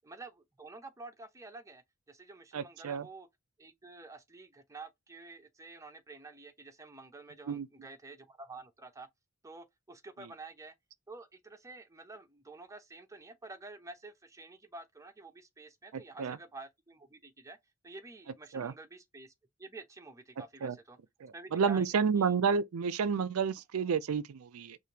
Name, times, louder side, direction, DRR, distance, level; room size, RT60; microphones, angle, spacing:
voice 1, 0.0-3.3 3.6-9.1 9.4-10.7 11.1-17.6 17.8-19.3 19.6-21.0 21.3-22.3, right 3 dB, 15° right, 0.7 m, -49 dB
voice 2, 2.5-3.0 7.5-7.7 16.2-16.4 18.5-18.7 20.6-20.7 21.2-24.8, right 6 dB, 80° right, 0.4 m, -30 dB
4.9 x 2.6 x 2.8 m
head